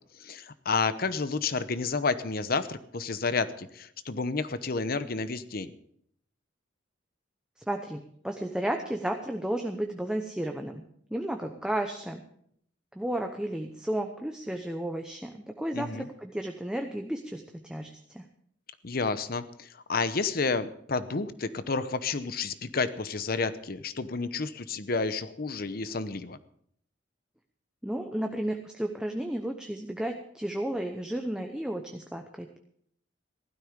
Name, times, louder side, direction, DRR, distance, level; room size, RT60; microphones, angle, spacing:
voice 1, 0.0-5.7 15.7-16.1 18.8-26.4, left 4 dB, 50° left, 13 dB, 0.9 m, -30 dB
voice 2, 7.7-10.8 11.1-12.2 12.9-18.3 27.8-32.6, right 1 dB, 5° right, 4 dB, 0.8 m, -33 dB
15.5 x 12.5 x 5.1 m, 0.67 s
head